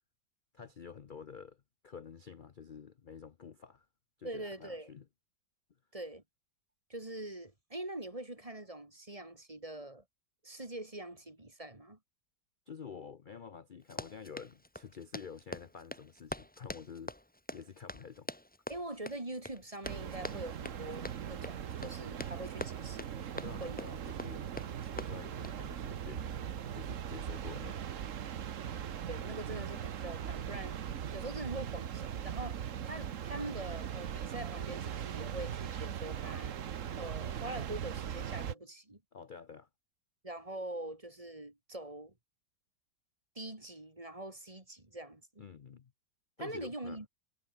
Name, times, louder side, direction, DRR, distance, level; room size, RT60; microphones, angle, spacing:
voice 1, 0.5-3.9 4.2-5.0 12.7-17.1 17.5-18.3 23.3-24.5 24.9-26.5 26.7-27.8 39.1-39.7 45.4-45.9 46.4-47.0, left 6 dB, 70° left, 0.4 m, -49 dB
voice 2, 4.2-4.9 5.9-6.2 6.9-10.0 10.4-12.0 18.7-23.3 23.6-23.8 24.3-24.4 29.1-30.8 31.1-36.5 37.0-39.0 40.2-42.1 43.3-45.4 46.4-47.1, right 1 dB, 20° right, 2.6 m, -44 dB
Run, 13.8-25.6, left 1 dB, 5° left, 1.4 m, -45 dB
sound 1, 19.8-38.5, right 9 dB, 50° right, 1.2 m, -40 dB
omnidirectional pair, 1.9 m